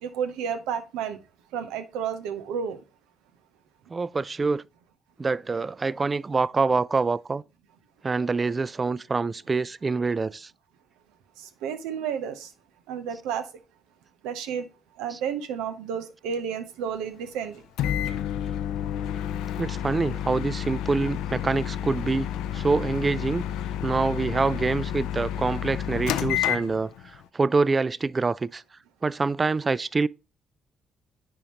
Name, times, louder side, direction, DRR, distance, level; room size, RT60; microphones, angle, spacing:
voice 1, 0.0-1.2 1.5-2.8 11.4-12.5 12.9-13.5 14.2-14.7 15.0-17.6, right 7 dB, 90° right, 0.8 m, -31 dB
voice 2, 3.9-4.6 5.2-7.4 8.0-10.5 15.1-15.2 19.6-22.3 22.5-23.4 23.8-26.9 27.3-28.6 29.0-30.1, right 4 dB, 35° right, 0.3 m, -25 dB
Microwave oven, 17.8-27.2, left 10 dB, 85° left, 0.4 m, -30 dB
9.8 x 3.7 x 2.9 m
supercardioid pair, 60°, 0 cm